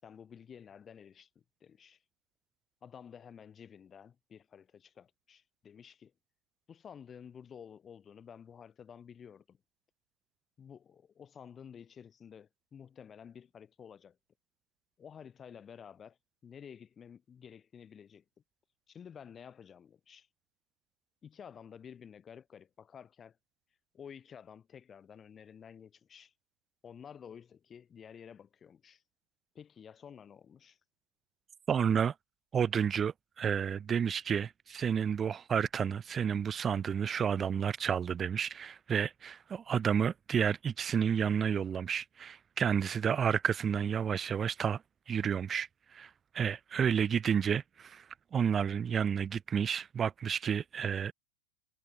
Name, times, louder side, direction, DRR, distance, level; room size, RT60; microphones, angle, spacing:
voice 1, 0.0-2.0 2.8-6.1 6.7-9.6 10.6-14.2 15.0-18.2 18.9-20.3 21.2-23.4 23.9-26.3 26.8-29.0 29.5-30.8, left 7 dB, 20° left, 4.5 m, -52 dB
voice 2, 31.7-32.1 32.5-44.8 45.1-48.0 48.3-51.1, right 7 dB, 20° right, 1.2 m, -31 dB
supercardioid pair, 155°, 0 cm